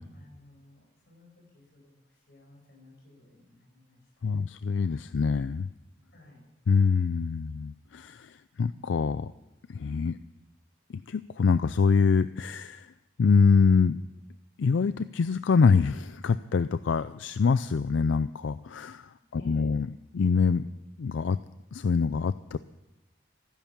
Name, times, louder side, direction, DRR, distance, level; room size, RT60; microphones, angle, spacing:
voice 1, 0.1-2.0 2.3-4.0 6.1-6.4 19.4-19.7, left 1 dB, 55° left, 0 dB, 6.1 m, -54 dB
voice 2, 4.2-5.7 6.7-9.3 9.7-10.2 11.1-12.9 13.2-14.0 14.6-19.9 20.1-20.7 21.0-21.4 21.7-22.6, left 5 dB, 85° left, 14 dB, 0.4 m, -25 dB
15.0 x 11.0 x 7.3 m, 0.95 s
head